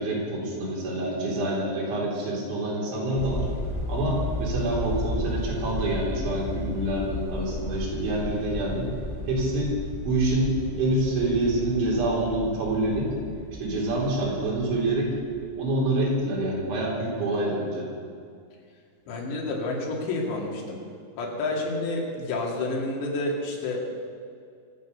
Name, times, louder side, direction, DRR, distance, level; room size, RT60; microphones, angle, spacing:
voice 1, 0.0-3.5 3.9-8.9 9.3-9.7 10.1-13.1 13.5-15.1 15.6-17.9, right 1 dB, 85° right, -4 dB, 6.1 m, -26 dB
sound 1, 3.2-16.4, left 2 dB, 20° left, 0.7 m, -34 dB
voice 2, 19.1-20.8 21.2-23.9, left 2 dB, 75° left, -2 dB, 4.8 m, -29 dB
24.0 x 8.7 x 6.9 m, 2.3 s
omnidirectional pair, 5.2 m